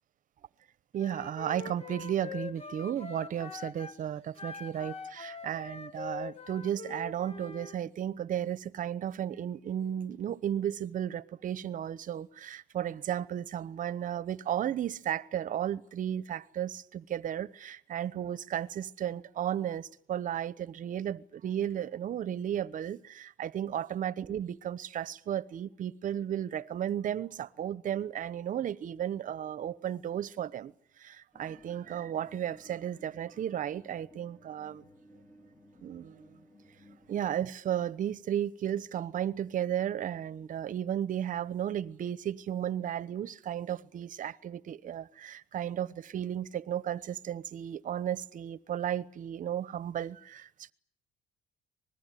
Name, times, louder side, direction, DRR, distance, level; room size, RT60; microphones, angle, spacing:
voice 1, 0.9-30.7 31.0-34.8 35.8-36.4 37.1-50.7, right 10 dB, 50° right, 1.0 m, -34 dB
Wind instrument woodwind instrument, 1.0-4.0 4.4-7.8, left 5 dB, 35° left, 1.4 m, -43 dB
sound 1, 31.3-37.2, equal, 15° left, 2.0 m, -58 dB
25.5 x 20.5 x 9.3 m
cardioid pair, 110°, 17 cm